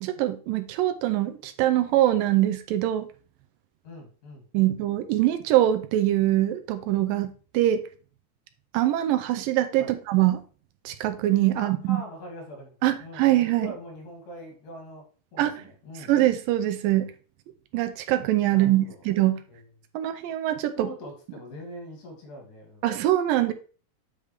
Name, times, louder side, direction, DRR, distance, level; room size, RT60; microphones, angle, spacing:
voice 1, 0.0-3.1 4.5-7.8 8.7-10.4 10.9-12.0 12.8-13.7 15.4-15.6 16.1-17.1 17.7-19.4 19.9-20.9 22.8-23.5, right 14 dB, 80° right, 2.2 m, -23 dB
voice 2, 3.8-4.7 9.8-10.0 11.5-15.0 15.3-16.1 18.5-19.0 19.5-19.6 20.8-22.9 23.3-23.5, left 1 dB, 70° left, 3.8 m, -43 dB
8.0 x 5.1 x 3.3 m
omnidirectional pair, 4.1 m